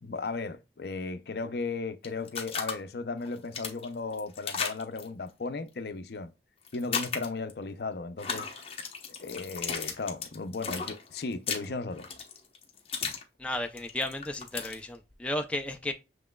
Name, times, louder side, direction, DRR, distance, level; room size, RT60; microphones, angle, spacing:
voice 1, 0.0-6.3 6.7-8.5 9.2-12.1, left 3 dB, 65° left, 0.5 m, -36 dB
sound 1, 2.0-2.7 3.2-5.1 6.7-7.5 8.2-13.2 13.6-14.8, left 6 dB, 35° left, 0.9 m, -35 dB
voice 2, 13.4-15.9, left 1 dB, 5° left, 0.4 m, -33 dB
7.2 x 3.1 x 2.2 m
head